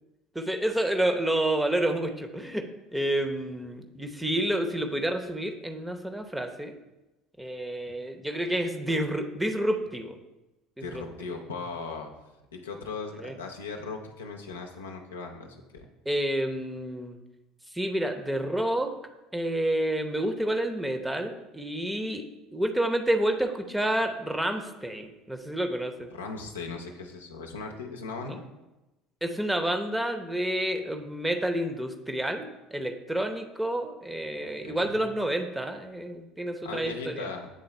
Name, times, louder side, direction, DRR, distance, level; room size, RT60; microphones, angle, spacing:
voice 1, 0.3-2.7 2.9-6.8 7.4-10.2 10.9-11.0 13.2-13.3 16.0-17.2 17.7-18.9 19.3-22.2 22.5-26.1 29.2-37.3, right 1 dB, 10° right, 6 dB, 0.8 m, -29 dB
voice 2, 10.8-12.1 12.5-15.9 26.1-28.4 34.4-35.0 36.6-37.5, left 4 dB, 75° left, 2 dB, 0.7 m, -38 dB
7.9 x 3.8 x 4.3 m, 1.0 s
figure-of-eight pair, 60°, 0 cm